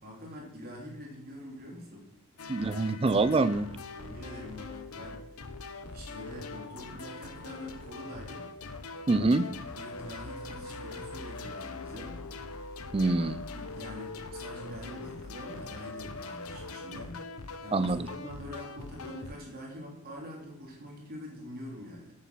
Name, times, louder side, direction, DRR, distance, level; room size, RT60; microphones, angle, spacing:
voice 1, 0.0-2.1 3.9-5.5 5.8-8.5 9.8-12.2 13.5-17.2 17.6-22.1, equal, 45° right, -1 dB, 3.1 m, -44 dB
sound 1, 2.4-19.4, left 3 dB, 85° left, 0.9 m, -42 dB
voice 2, 2.5-3.7 9.1-9.5 12.9-13.4 17.7-18.1, right 3 dB, 25° right, 16 dB, 0.4 m, -25 dB
8.7 x 7.0 x 6.1 m, 0.82 s
head